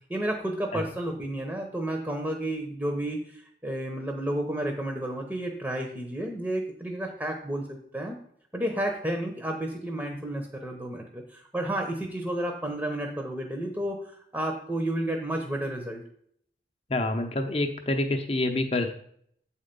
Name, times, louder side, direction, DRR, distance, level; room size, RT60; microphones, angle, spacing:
voice 1, 0.1-8.2 8.5-16.0, right 1 dB, 10° right, 2 dB, 0.8 m, -31 dB
voice 2, 16.9-18.9, left 2 dB, 30° left, 5 dB, 0.8 m, -27 dB
8.2 x 4.4 x 5.3 m, 0.66 s
head